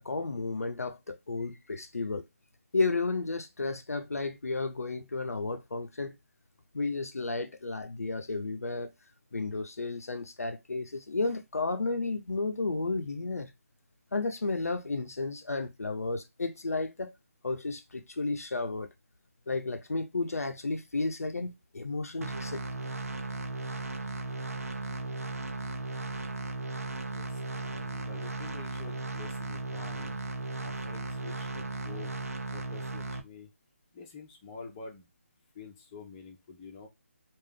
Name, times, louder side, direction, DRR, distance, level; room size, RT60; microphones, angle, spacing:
voice 1, 0.0-2.2 2.7-6.2 6.7-8.9 9.3-13.5 14.1-17.1 17.4-18.9 19.5-22.6, left 3 dB, 90° left, 0.6 m, -32 dB
sound 1, 22.2-33.2, right 2 dB, 85° right, 0.6 m, -36 dB
voice 2, 27.1-30.2 30.6-32.2 32.5-33.5 33.9-35.1 35.5-36.9, left 4 dB, 25° left, 0.9 m, -48 dB
3.3 x 2.5 x 3.6 m
figure-of-eight pair, 155°, 8 cm